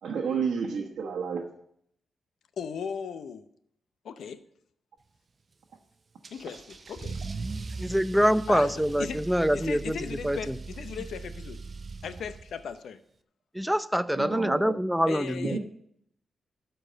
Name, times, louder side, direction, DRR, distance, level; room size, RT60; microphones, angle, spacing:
voice 1, 0.0-1.5 14.1-14.8 15.4-15.6, right 6 dB, 80° right, 0 dB, 1.1 m, -31 dB
voice 2, 2.6-3.5 4.0-4.4 6.3-7.2 8.5-9.2 9.5-11.6 12.0-13.0 15.1-15.6, left 7 dB, 80° left, 11 dB, 0.7 m, -37 dB
Car / Engine starting / Accelerating revving vroom, 6.2-12.7, right 3 dB, 45° right, 0.6 m, -39 dB
voice 3, 7.8-10.0 10.2-10.5 13.5-15.6, equal, 5° right, 13 dB, 0.5 m, -25 dB
12.5 x 4.6 x 7.6 m, 0.70 s
cardioid pair, 65°, 0 cm